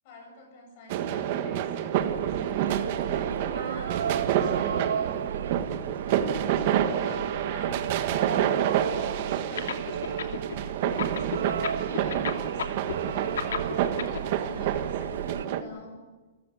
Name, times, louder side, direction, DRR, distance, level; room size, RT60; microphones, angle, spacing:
voice 1, 0.0-2.8 3.4-5.3 5.8-16.1, left 3 dB, 30° left, 4 dB, 7.5 m, -48 dB
sound 1, 0.9-15.6, right 10 dB, 35° right, 1.5 m, -28 dB
sound 2, 1.9-15.5, right 8 dB, 80° right, 0.7 m, -35 dB
sound 3, 9.6-10.5 10.8-14.2, left 8 dB, 75° left, 2.7 m, -32 dB
28.5 x 15.5 x 8.7 m, 1.2 s
hypercardioid pair, 180°, 0 cm